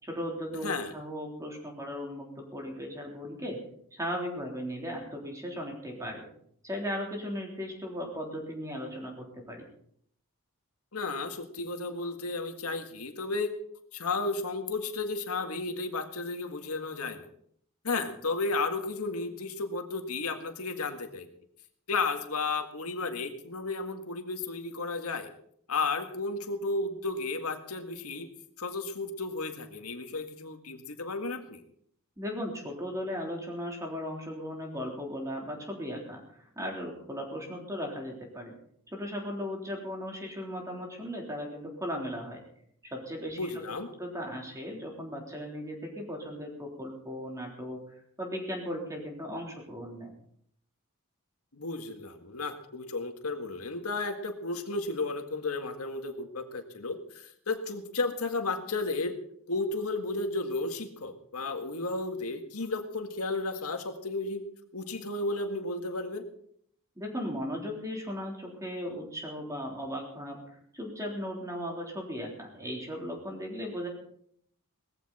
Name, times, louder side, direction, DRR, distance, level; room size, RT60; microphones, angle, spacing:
voice 1, 0.0-3.6 3.9-6.2 6.6-9.6 32.2-38.5 38.9-42.4 42.8-43.5 44.0-50.1 67.0-70.4 70.7-73.9, equal, 15° right, 0 dB, 3.7 m, -37 dB
voice 2, 0.6-0.9 10.9-13.5 13.9-17.3 17.8-21.3 21.9-25.3 25.7-28.3 28.6-31.6 43.3-43.9 51.5-59.2 59.5-64.4 64.7-66.2, left 3 dB, 80° left, 6 dB, 1.8 m, -33 dB
18.5 x 14.5 x 4.3 m, 0.66 s
head